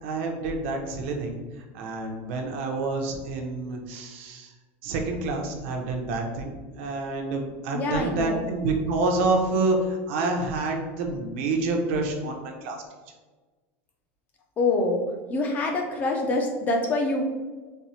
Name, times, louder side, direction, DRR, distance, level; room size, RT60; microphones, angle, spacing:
voice 1, 0.0-1.4 1.7-4.5 4.8-12.8, right 3 dB, 65° right, 3 dB, 0.6 m, -28 dB
voice 2, 7.7-8.5 14.6-17.2, left 2 dB, 25° left, 2 dB, 0.4 m, -25 dB
4.2 x 2.0 x 2.7 m, 1.3 s
supercardioid pair, 165°, 7 cm